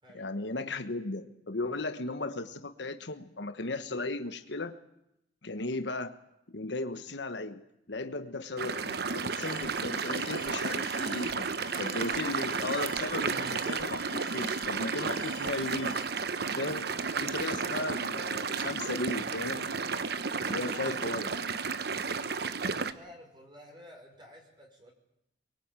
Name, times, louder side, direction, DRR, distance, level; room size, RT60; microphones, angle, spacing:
voice 1, 0.1-4.8 5.4-6.1 6.5-7.6 7.9-11.5 11.7-16.0 16.5-19.7 20.4-21.3, left 2 dB, 75° left, 8 dB, 1.3 m, -36 dB
sound 1, 8.6-22.9, right 5 dB, 60° right, 1.0 m, -33 dB
sound 2, 9.3-16.1, left 2 dB, 55° left, 4.9 m, -48 dB
voice 2, 20.4-21.0 22.6-24.9, equal, 25° right, 1 dB, 5.5 m, -52 dB
24.0 x 22.5 x 9.0 m, 0.83 s
head